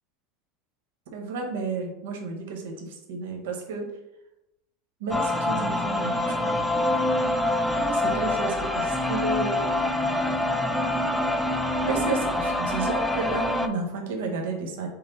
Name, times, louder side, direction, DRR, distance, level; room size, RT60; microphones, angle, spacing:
voice 1, 1.1-3.9 5.0-6.5 7.7-9.7 11.9-14.9, right 4 dB, 85° right, 2 dB, 1.1 m, -32 dB
sound 1, 5.1-13.7, left 1 dB, 5° left, 0.3 m, -25 dB
5.8 x 2.0 x 4.0 m, 0.89 s
supercardioid pair, 160°, 0 cm